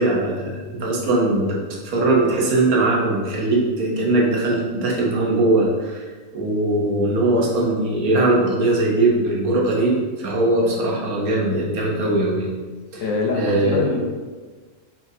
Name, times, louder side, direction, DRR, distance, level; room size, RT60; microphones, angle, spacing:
voice 1, 0.0-1.6 1.8-6.0 6.3-12.5 12.9-13.0 13.3-13.8, right 2 dB, 85° right, -2 dB, 1.3 m, -20 dB
voice 2, 13.0-14.0, left 3 dB, 70° left, 1 dB, 1.0 m, -23 dB
5.6 x 2.5 x 2.7 m, 1.4 s
omnidirectional pair, 1.5 m